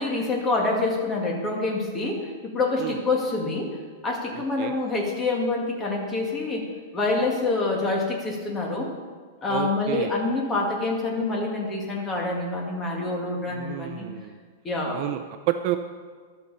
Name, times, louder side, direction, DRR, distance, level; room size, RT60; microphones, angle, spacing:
voice 1, 0.0-3.7 4.0-6.7 6.9-8.9 9.4-14.1 14.6-15.0, left 3 dB, 15° left, 0 dB, 2.0 m, -26 dB
voice 2, 4.3-4.8 9.5-10.1 13.5-14.4 14.9-15.8, right 13 dB, 35° right, 7 dB, 0.6 m, -30 dB
13.5 x 12.0 x 4.2 m, 1.5 s
supercardioid pair, 170°, 0 cm